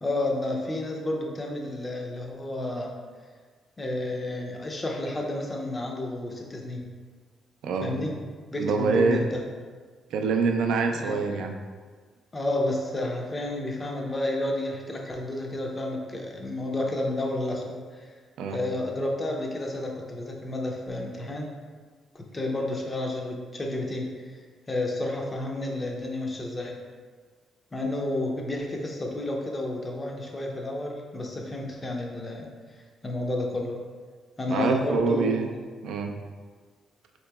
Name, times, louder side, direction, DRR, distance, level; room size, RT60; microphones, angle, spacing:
voice 1, 0.0-2.9 3.8-6.9 7.8-8.2 8.5-9.4 10.9-11.2 12.3-18.1 18.5-21.5 22.1-24.4 24.7-26.8 27.7-32.5 33.0-33.8 34.4-35.6, left 1 dB, 25° left, 1 dB, 0.5 m, -31 dB
voice 2, 7.6-7.9 8.6-9.2 10.1-11.5 18.4-18.6 34.5-35.5 35.8-36.1, right 4 dB, 80° right, 4 dB, 0.3 m, -25 dB
3.6 x 2.9 x 2.3 m, 1.5 s
cardioid pair, 90°, 0 cm